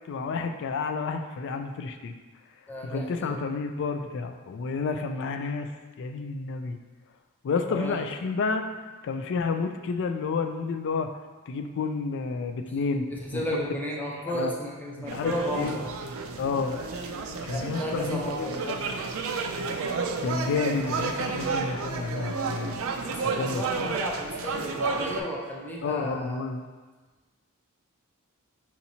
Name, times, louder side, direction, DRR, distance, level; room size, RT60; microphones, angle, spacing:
voice 1, 0.1-2.2 2.8-5.7 6.0-6.8 7.4-8.6 9.0-11.1 11.5-13.1 14.3-14.5 15.0-15.8 16.4-16.8 17.4-18.8 20.2-22.8 23.2-23.9 25.8-26.6, left 4 dB, 55° left, 6 dB, 0.3 m, -30 dB
voice 2, 2.7-3.4 7.7-8.0 13.1-15.9 17.5-18.6 23.1-26.4, equal, 10° left, -3 dB, 0.6 m, -33 dB
sound 1, 15.1-25.2, right 4 dB, 65° right, 0.4 m, -31 dB
5.8 x 2.8 x 2.7 m, 1.3 s
head